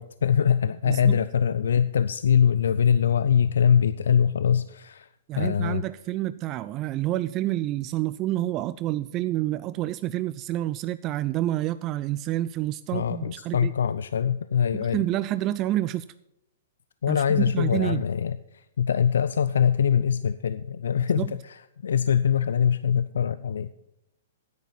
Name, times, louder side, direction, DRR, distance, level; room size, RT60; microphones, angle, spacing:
voice 1, 0.0-5.1 5.4-5.8 12.9-15.0 17.0-23.7, left 8 dB, 80° left, 15 dB, 0.4 m, -23 dB
voice 2, 0.9-1.2 5.3-13.7 14.7-16.0 17.1-18.0 21.2-21.3, right 14 dB, 30° right, 15 dB, 0.3 m, -28 dB
9.5 x 9.2 x 5.7 m, 0.84 s
hypercardioid pair, 130°, 0 cm